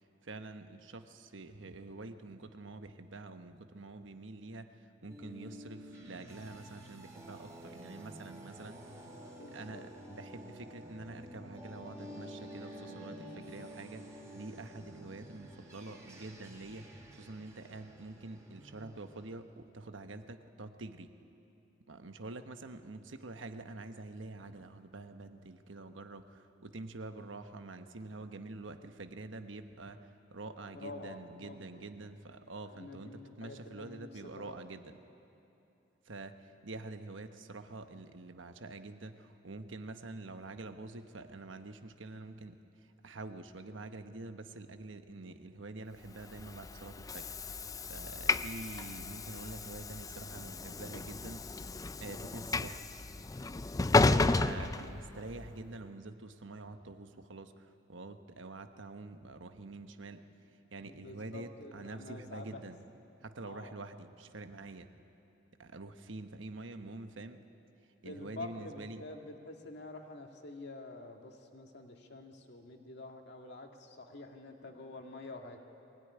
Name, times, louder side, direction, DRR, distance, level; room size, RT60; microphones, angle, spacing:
voice 1, 0.2-4.7 5.0-8.8 9.5-14.0 14.3-21.1 21.9-30.0 30.3-34.9 36.1-36.3 36.6-42.6 43.0-47.3 47.9-51.7 52.0-52.8 53.8-60.2 60.7-62.8 63.2-64.9 65.6-67.4 68.0-69.0, right 2 dB, 85° right, 8 dB, 1.1 m, -46 dB
sound 1, 5.1-19.3, equal, 15° right, 3.1 m, -50 dB
voice 2, 8.7-9.9 30.7-31.8 32.6-34.6 52.0-52.2 53.9-54.3 60.7-62.7 63.4-63.7 68.0-75.6, left 2 dB, 65° left, 3 dB, 2.0 m, -48 dB
Train / Sliding door, 46.2-55.5, left 3 dB, 20° left, 0.4 m, -33 dB
21.5 x 17.0 x 9.9 m, 2.8 s
head